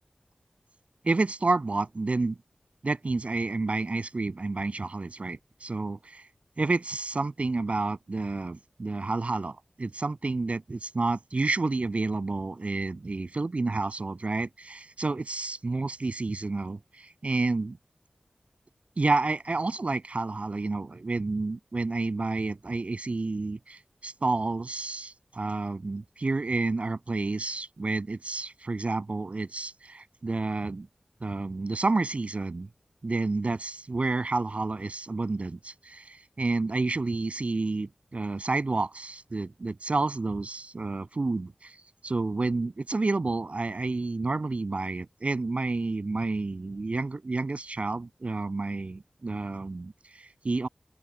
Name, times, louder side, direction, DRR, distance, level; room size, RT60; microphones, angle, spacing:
voice 1, 1.0-2.4 2.8-6.2 6.6-17.8 19.0-30.9 31.2-32.7 33.0-41.7 42.0-50.7, right 3 dB, 60° right, 7.7 m, -30 dB
open air
wide cardioid pair, 60°, 3 cm